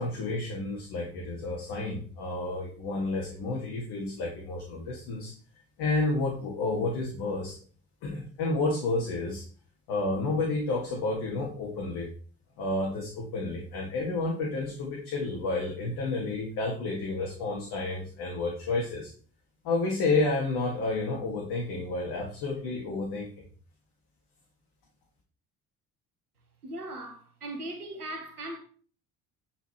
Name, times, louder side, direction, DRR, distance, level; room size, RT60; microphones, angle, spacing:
voice 1, 0.0-5.3 5.8-7.6 8.0-9.4 9.9-12.1 12.6-19.1 19.6-23.3, left 2 dB, 55° left, 2.4 m, -30 dB
voice 2, 26.6-28.6, right 1 dB, 85° right, 1.5 m, -38 dB
9.1 x 5.5 x 4.6 m
figure-of-eight pair, 50°, 44 cm